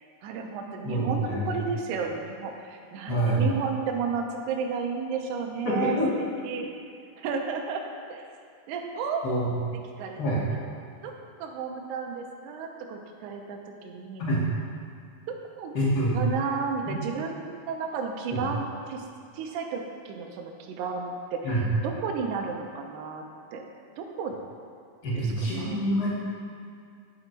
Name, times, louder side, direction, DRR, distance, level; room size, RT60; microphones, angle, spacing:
voice 1, 0.2-6.0 6.4-6.7 7.2-7.8 8.1-8.2 8.7-9.2 10.0-10.2 11.0-11.1 11.4-14.2 15.6-15.8 16.1-19.1 19.3-21.5 21.8-23.3 23.5-23.6 24.0-24.3 25.2-25.8, right 5 dB, 75° right, 2 dB, 1.8 m, -32 dB
voice 2, 0.8-1.6 3.1-3.5 5.6-6.1 6.6-6.7 9.2-9.5 10.2-10.4 14.2-14.4 15.7-16.2 16.9-17.0 18.3-18.4 21.4-21.6 25.0-26.1, right 1 dB, 40° left, -7 dB, 1.4 m, -26 dB
10.5 x 3.9 x 4.5 m, 2.4 s
omnidirectional pair, 4.3 m